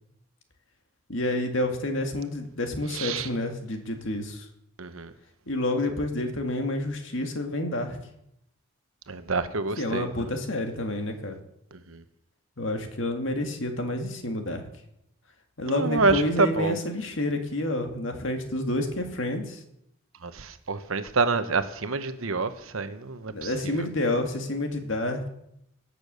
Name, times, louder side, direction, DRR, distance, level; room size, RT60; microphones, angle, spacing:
voice 1, 1.1-4.5 5.5-8.0 9.8-11.4 12.6-14.7 15.6-19.6 23.3-25.3, left 1 dB, 65° left, 2.0 m, -29 dB
voice 2, 2.9-3.3 4.8-5.1 9.1-10.3 11.7-12.0 15.7-16.8 20.2-23.9, right 3 dB, 80° right, 1.0 m, -28 dB
17.5 x 6.9 x 6.8 m
head